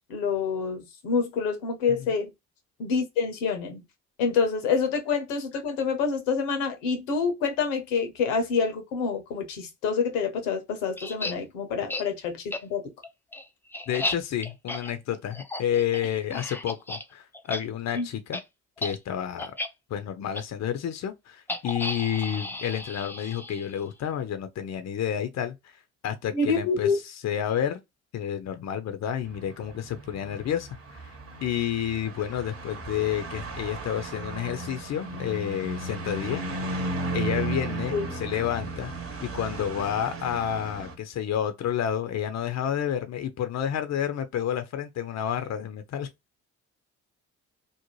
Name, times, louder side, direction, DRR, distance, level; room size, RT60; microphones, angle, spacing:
voice 1, 0.1-2.3 2.8-3.8 4.2-12.8 17.9-18.1 26.3-27.0 37.9-38.1, left 5 dB, 80° left, 0.8 m, -27 dB
sound 1, 11.0-11.3 11.9-12.0 12.5-12.6 13.0-17.0 17.3-17.6 17.9-18.0 18.3-18.4 18.8-18.9 19.4-19.7 20.3-20.4 21.5-23.8, left 2 dB, 5° left, 0.4 m, -34 dB
voice 2, 13.9-18.4 18.8-19.5 19.9-25.7 26.0-26.9 27.2-27.8 28.1-31.1 31.4-36.4 37.1-46.1, left 9 dB, 45° left, 0.6 m, -30 dB
sound 2, 29.3-40.9, right 3 dB, 35° right, 1.0 m, -35 dB
2.6 x 2.1 x 3.0 m
hypercardioid pair, 50°, 37 cm